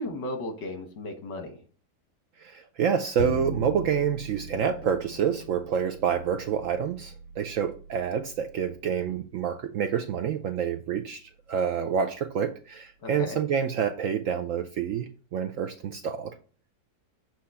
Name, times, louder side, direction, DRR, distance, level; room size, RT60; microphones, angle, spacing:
voice 1, 0.0-1.6 9.1-9.2 13.0-13.4, left 1 dB, 90° left, 1.9 m, -35 dB
voice 2, 2.4-16.4, right 7 dB, 75° right, 0.7 m, -28 dB
Bowed string instrument, 3.2-9.4, left 3 dB, 65° left, 0.8 m, -40 dB
7.4 x 2.9 x 5.5 m
omnidirectional pair, 1.8 m